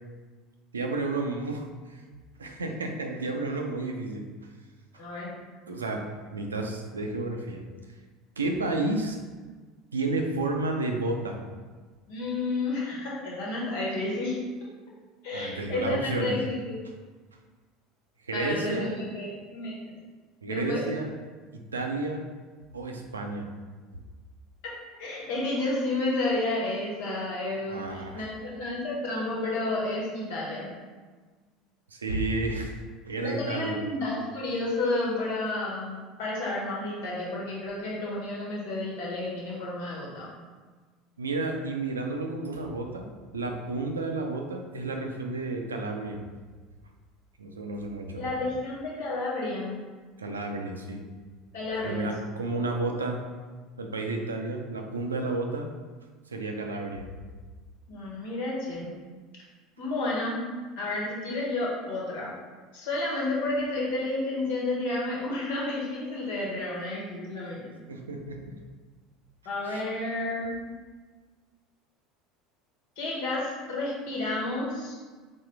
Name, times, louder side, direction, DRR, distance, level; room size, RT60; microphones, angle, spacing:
voice 1, 0.7-2.0 2.4-4.3 5.7-6.0 6.3-7.6 8.4-9.2 9.9-11.4 15.3-16.4 18.3-19.0 20.4-21.1 21.5-22.2 22.7-23.5 27.7-28.2 31.9-32.8 33.1-33.8 41.2-43.1 43.3-46.2 47.4-48.2 50.2-51.0 51.8-53.2 53.8-55.7 56.3-57.1 67.9-68.4 69.7-69.8, right 2 dB, 85° right, 3 dB, 0.5 m, -31 dB
voice 2, 5.0-5.3 12.1-14.4 15.2-16.7 18.3-19.7 20.5-20.8 25.0-30.7 33.2-40.3 48.2-49.8 51.5-52.1 57.9-58.9 59.8-60.4 60.8-62.3 62.7-67.7 69.4-70.6 73.0-74.9, left 2 dB, 65° left, -5 dB, 1.5 m, -31 dB
4.0 x 3.7 x 3.3 m, 1.4 s
figure-of-eight pair, 70°, 0 cm